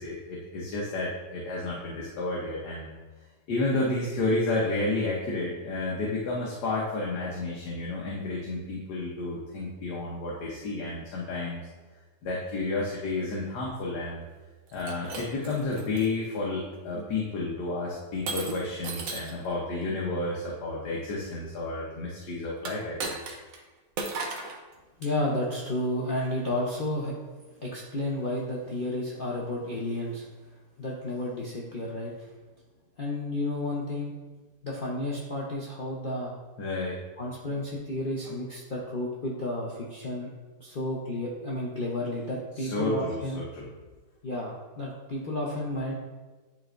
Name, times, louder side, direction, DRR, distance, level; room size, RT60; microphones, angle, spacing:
voice 1, 0.0-2.9 3.5-11.7 12.2-14.2 14.7-23.2 36.6-37.0 37.4-37.5 38.3-38.4 42.5-43.7, left 2 dB, 70° left, -4 dB, 1.5 m, -31 dB
Shatter, 14.7-16.1 16.7-17.1 18.3-19.4 22.6-23.6 24.0-24.6, right 3 dB, 60° right, 1.1 m, -36 dB
voice 2, 25.0-27.1 27.6-30.3 30.8-32.1 33.0-34.1 34.6-36.3 37.2-40.3 40.6-43.4 44.2-45.9, left 1 dB, 40° left, -5 dB, 0.8 m, -32 dB
10.5 x 4.1 x 2.5 m, 1.3 s
omnidirectional pair, 1.9 m